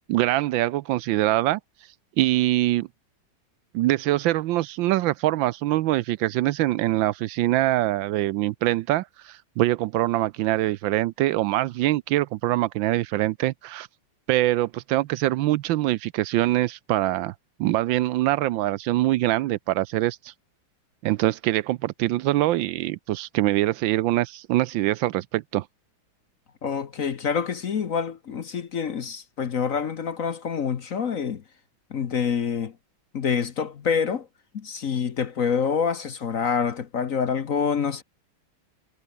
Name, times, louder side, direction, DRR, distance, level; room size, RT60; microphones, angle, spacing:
voice 1, 0.1-1.6 2.2-2.9 3.7-13.9 14.3-17.3 17.6-20.3 21.0-25.6, right 16 dB, 75° right, 1.3 m, -24 dB
voice 2, 26.6-31.4 31.9-32.8 33.1-34.3 34.5-38.0, left 6 dB, 50° left, 1.2 m, -26 dB
omnidirectional pair, 2.2 m